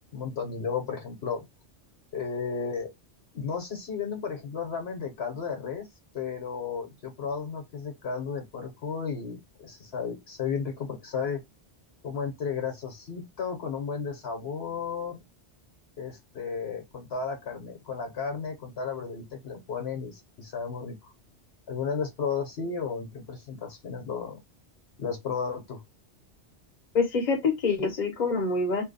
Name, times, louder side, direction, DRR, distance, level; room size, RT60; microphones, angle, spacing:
voice 1, 0.1-1.4 2.1-2.9 3.3-5.9 6.1-11.4 12.0-15.2 16.0-20.9 21.7-24.4 25.0-25.8, left 6 dB, 65° left, 1.2 m, -33 dB
voice 2, 26.9-28.8, left 4 dB, 40° left, 1.0 m, -26 dB
2.8 x 2.2 x 3.9 m
omnidirectional pair, 1.2 m